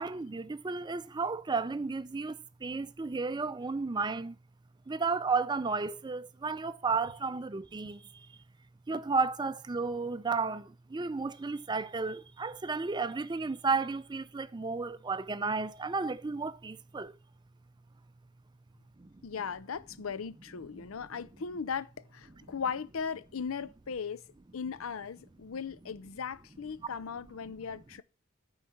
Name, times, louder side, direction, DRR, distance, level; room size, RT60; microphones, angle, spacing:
voice 1, 0.0-4.4 4.9-8.3 8.9-17.2 19.0-19.1, right 4 dB, 20° right, 0.4 m, -33 dB
voice 2, 19.2-24.2 24.5-28.0, left 6 dB, 80° left, 0.6 m, -38 dB
9.3 x 4.8 x 7.8 m
head